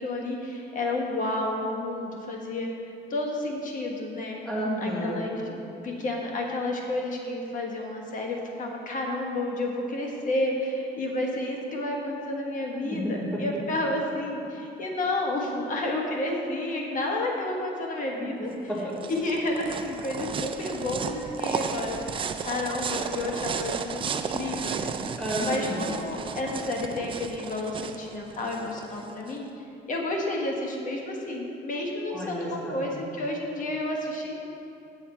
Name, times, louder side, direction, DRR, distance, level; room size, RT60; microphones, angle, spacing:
voice 1, 0.0-2.7 3.1-4.4 4.8-18.5 19.1-25.1 25.4-29.5 29.9-34.3, left 2 dB, 50° left, 0 dB, 1.3 m, -31 dB
voice 2, 4.4-5.2 12.8-13.4 18.2-18.9 25.2-25.8 32.1-32.8, equal, 5° left, -6 dB, 2.2 m, -31 dB
sound 1, 18.5-29.4, right 6 dB, 30° right, 0.4 m, -34 dB
8.4 x 7.3 x 4.4 m, 2.8 s
cardioid pair, 110°, 17 cm